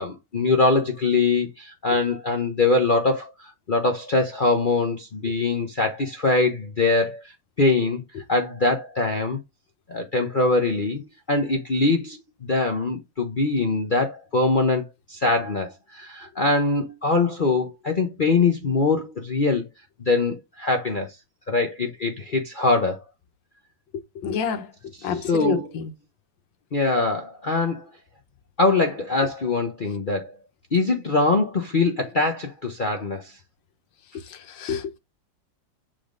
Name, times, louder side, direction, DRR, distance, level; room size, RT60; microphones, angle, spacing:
voice 1, 0.0-9.4 9.9-19.7 20.0-21.1 21.5-23.0 25.0-25.8 26.7-27.9 28.6-30.4 30.7-33.4, left 3 dB, 55° left, 0.5 m, -23 dB
voice 2, 24.2-24.7 25.0-25.9 34.3-35.0, left 6 dB, 80° left, 1.6 m, -28 dB
7.4 x 3.5 x 3.7 m
omnidirectional pair, 2.0 m